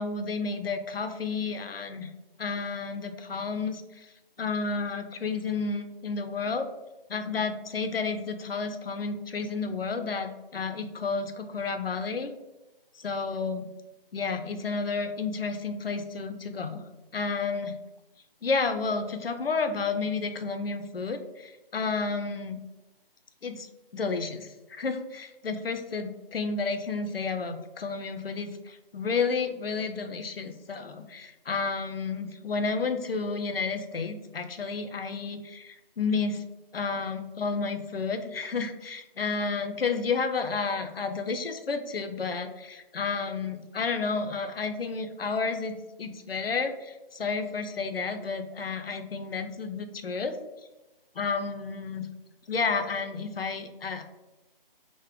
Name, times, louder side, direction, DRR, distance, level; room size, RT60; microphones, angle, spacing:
voice 1, 0.0-2.1 2.4-6.7 7.1-12.3 13.0-13.7 14.1-16.8 17.1-17.8 18.4-22.6 23.4-23.7 23.9-36.4 36.7-50.4 51.2-52.1 52.5-54.0, left 4 dB, 75° left, 8 dB, 0.5 m, -31 dB
3.6 x 2.0 x 3.5 m, 1.0 s
figure-of-eight pair, 150°, 30 cm